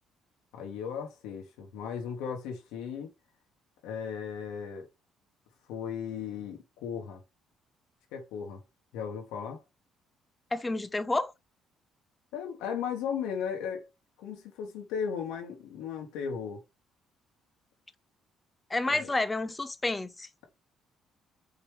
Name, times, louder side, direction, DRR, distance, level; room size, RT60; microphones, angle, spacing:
voice 1, 0.5-3.1 3.8-4.9 5.7-7.2 8.1-8.6 8.9-9.6 12.3-13.9 14.2-16.6 18.9-19.1, left 7 dB, 90° left, 1.4 m, -36 dB
voice 2, 10.5-11.3 18.7-20.3, left 2 dB, 20° left, 0.7 m, -30 dB
5.3 x 3.1 x 3.2 m
supercardioid pair, 80°, 0 cm